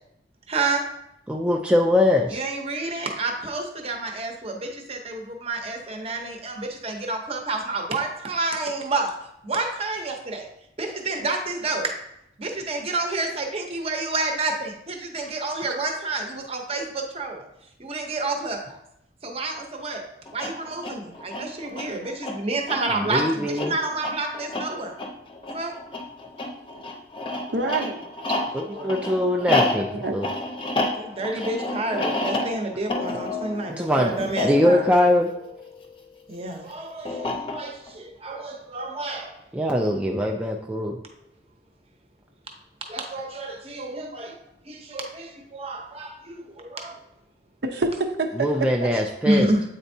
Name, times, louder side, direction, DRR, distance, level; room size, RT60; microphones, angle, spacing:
voice 1, 0.5-0.8 2.3-9.1 9.4-10.5 10.8-11.9 12.4-17.4 17.8-18.8 19.2-20.0 20.3-24.9 25.5-25.7 31.0-34.8 36.3-39.3 42.9-44.4 44.7-47.0 49.2-49.6, right 2 dB, 35° right, 2 dB, 0.8 m, -29 dB
voice 2, 1.3-2.4 23.1-23.7 28.5-30.3 33.7-35.3 39.5-41.0 48.4-49.5, left 1 dB, 5° right, 0 dB, 0.3 m, -22 dB
sound 1, 20.3-36.0 37.1-37.9, left 2 dB, 30° left, 0.7 m, -30 dB
voice 3, 27.5-28.1 28.7-29.5 29.9-30.2 47.6-48.9, right 3 dB, 65° right, 4 dB, 0.7 m, -28 dB
8.1 x 4.3 x 2.7 m, 0.81 s
head